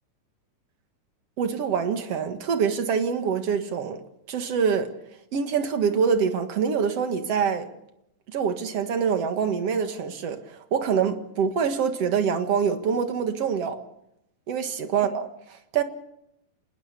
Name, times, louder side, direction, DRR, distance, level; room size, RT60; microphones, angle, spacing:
voice 1, 1.4-4.0 4.3-4.9 5.3-7.7 8.3-13.8 14.5-15.8, right 6 dB, 50° right, 2.4 m, -25 dB
26.0 x 20.5 x 6.8 m
omnidirectional pair, 4.0 m